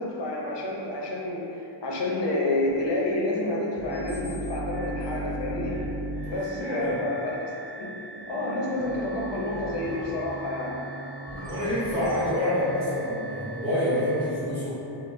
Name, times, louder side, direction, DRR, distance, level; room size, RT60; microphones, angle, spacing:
voice 1, 0.0-5.8 6.2-7.4 7.8-8.0 8.3-10.8, left 2 dB, 55° left, -3 dB, 0.6 m, -29 dB
sound 1, 2.4-14.3, right 1 dB, 30° right, 1.4 m, -37 dB
voice 2, 6.2-7.0 11.3-14.8, left 1 dB, 10° right, -15 dB, 1.4 m, -27 dB
5.4 x 2.1 x 2.5 m, 3.0 s
wide cardioid pair, 120°, 50 cm